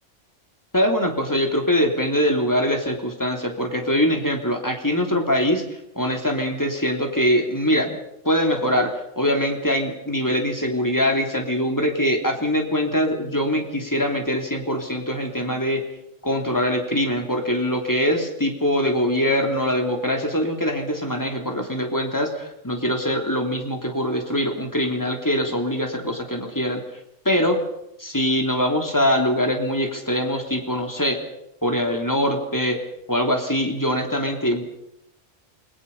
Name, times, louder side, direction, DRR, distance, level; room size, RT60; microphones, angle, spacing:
voice 1, 0.7-5.6 5.9-7.9 8.2-15.8 16.2-26.8 27.2-27.6 28.0-31.2 31.6-32.8 33.1-34.6, equal, 15° left, 3 dB, 3.2 m, -23 dB
28.5 x 22.0 x 5.5 m, 0.81 s
omnidirectional pair, 1.3 m